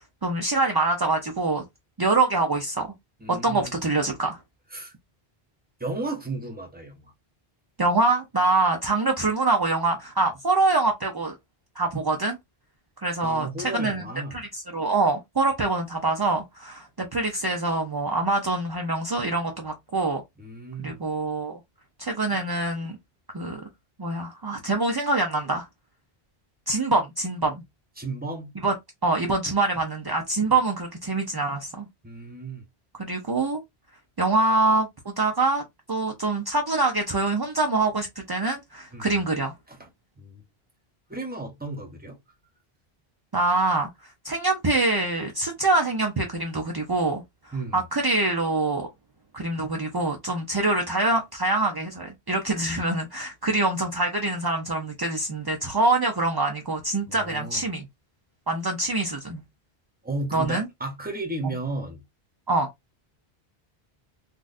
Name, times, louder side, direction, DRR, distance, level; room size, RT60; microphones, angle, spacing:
voice 1, 0.2-1.6 2.0-2.9 3.3-4.4 7.8-11.4 11.8-12.4 13.0-14.0 14.3-20.2 20.8-21.6 22.0-23.0 23.3-23.6 24.0-25.7 26.7-27.6 28.6-28.7 29.0-31.9 33.0-33.6 34.2-35.6 35.9-39.5 43.3-43.9 44.2-47.2 47.7-48.9 49.3-57.8 58.5-59.4 60.3-60.7 62.5-62.7, right 2 dB, 35° right, 0.3 m, -25 dB
voice 2, 3.2-3.7 4.7-4.9 5.8-7.1 13.2-14.4 20.4-20.9 28.0-28.5 32.0-32.6 38.9-39.1 39.7-39.9 40.2-40.4 41.1-42.2 47.5-47.8 57.1-57.6 60.0-62.0, right 2 dB, 10° right, 0.7 m, -34 dB
3.8 x 2.4 x 2.5 m
omnidirectional pair, 1.1 m